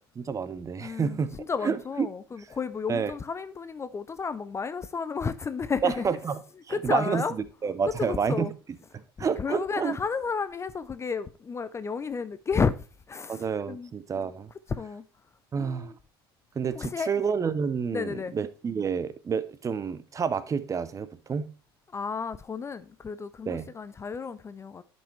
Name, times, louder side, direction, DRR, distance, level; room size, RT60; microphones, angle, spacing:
voice 1, 0.2-1.4 1.6-2.1 2.9-3.1 5.8-6.4 6.7-7.2 7.6-8.5 8.9-10.0 13.3-14.5 15.5-15.9 16.6-21.5 23.5-23.7, right 6 dB, 25° right, 0.7 m, -29 dB
voice 2, 0.8-6.0 6.7-7.4 7.9-8.5 9.4-13.9 14.7-15.1 15.6-15.9 16.7-17.1 17.9-18.3 21.9-24.8, left 5 dB, 20° left, 0.5 m, -32 dB
11.5 x 5.3 x 3.2 m
figure-of-eight pair, 70°, 13 cm